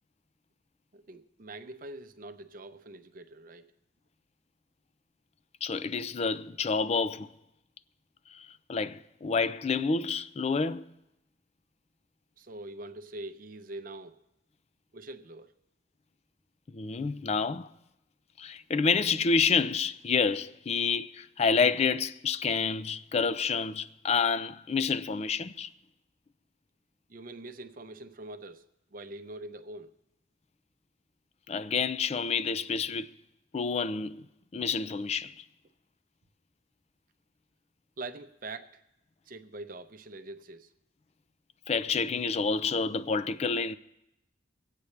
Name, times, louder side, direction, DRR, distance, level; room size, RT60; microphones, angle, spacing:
voice 1, 0.9-3.7 12.4-14.2 14.9-15.5 27.1-29.9 38.0-38.8 39.3-40.7, right 2 dB, 50° right, 0.7 m, -44 dB
voice 2, 5.6-7.3 8.3-10.8 16.7-17.7 18.4-25.7 31.5-33.1 33.5-34.3 34.5-35.4 41.7-43.8, left 5 dB, 35° left, 0.4 m, -28 dB
25.0 x 8.4 x 3.3 m
head